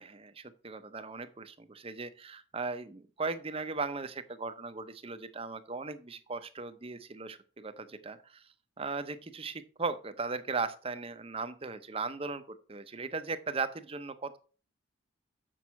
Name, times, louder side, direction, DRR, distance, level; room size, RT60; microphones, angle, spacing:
voice 1, 0.0-8.5 8.8-14.4, right 4 dB, 30° right, 11 dB, 0.7 m, -37 dB
7.2 x 6.2 x 5.8 m, 0.39 s
head